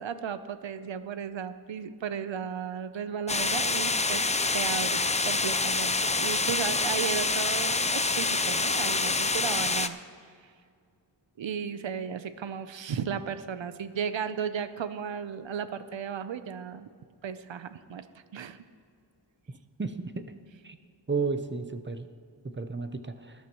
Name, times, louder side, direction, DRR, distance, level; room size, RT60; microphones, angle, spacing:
voice 1, 0.0-4.2 4.5-10.3 11.4-16.9 17.2-18.1 18.3-18.6, right 7 dB, 80° right, 12 dB, 0.7 m, -35 dB
sound 1, 3.3-9.9, left 3 dB, 15° left, 0.4 m, -27 dB
voice 2, 19.8-20.2 20.6-20.8 21.1-22.1 22.6-23.3, right 4 dB, 25° right, 9 dB, 0.7 m, -32 dB
20.0 x 11.5 x 3.0 m, 2.1 s
wide cardioid pair, 100°, 45 cm